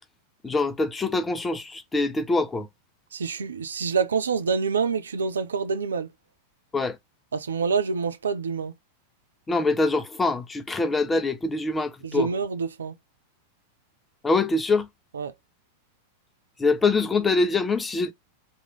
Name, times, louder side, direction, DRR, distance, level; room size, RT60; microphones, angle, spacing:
voice 1, 0.4-2.7 6.7-7.0 9.5-12.3 14.2-14.9 16.6-18.1, left 3 dB, 15° left, 0.7 m, -24 dB
voice 2, 3.1-6.1 7.3-8.7 12.0-12.9 15.1-15.3, right 5 dB, 70° right, 0.6 m, -26 dB
3.7 x 3.1 x 3.7 m
figure-of-eight pair, 90°, 0 cm